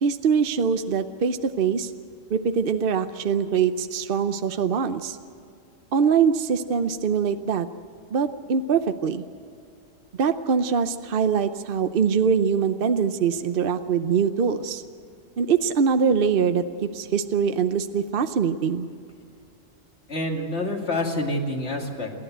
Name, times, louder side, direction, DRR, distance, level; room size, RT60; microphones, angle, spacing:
voice 1, 0.0-1.9 2.3-5.2 5.9-7.7 8.1-9.2 10.2-14.8 15.4-18.9, right 6 dB, 50° right, 9 dB, 0.8 m, -23 dB
voice 2, 20.1-22.1, left 1 dB, 55° left, 1 dB, 2.8 m, -27 dB
29.0 x 12.0 x 8.0 m, 2.5 s
omnidirectional pair, 1.4 m